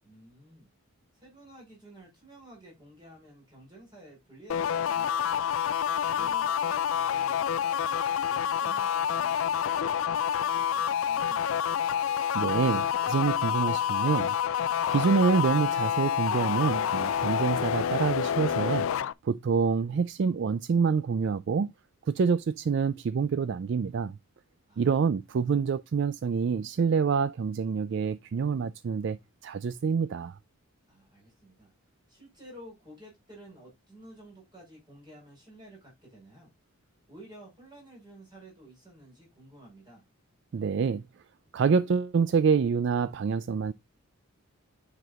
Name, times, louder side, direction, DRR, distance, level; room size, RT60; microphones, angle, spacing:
voice 1, 0.0-0.7 1.1-5.4 6.0-7.8 8.3-11.6 24.7-24.9 25.4-25.5 30.9-31.7 32.1-36.5 37.1-40.1, right 1 dB, 20° right, 5.0 m, -52 dB
sound 1, 4.5-19.1, left 9 dB, 65° left, 0.4 m, -28 dB
voice 2, 12.1-14.4 14.9-18.9 19.2-21.7 22.1-24.2 24.8-30.4 40.5-41.0 41.5-43.7, right 5 dB, 55° right, 0.3 m, -27 dB
9.3 x 5.9 x 2.3 m
head